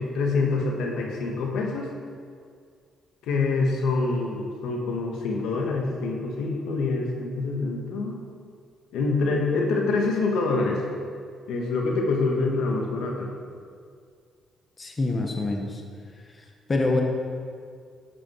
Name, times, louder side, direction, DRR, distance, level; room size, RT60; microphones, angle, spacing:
voice 1, 0.0-1.9 3.2-8.2 8.9-10.8 11.5-13.3, left 3 dB, 85° left, 0 dB, 1.7 m, -26 dB
voice 2, 14.8-15.8 16.7-17.0, left 2 dB, 30° left, 1 dB, 1.4 m, -25 dB
12.0 x 8.5 x 4.7 m, 2.1 s
cardioid pair, 90°, 0 cm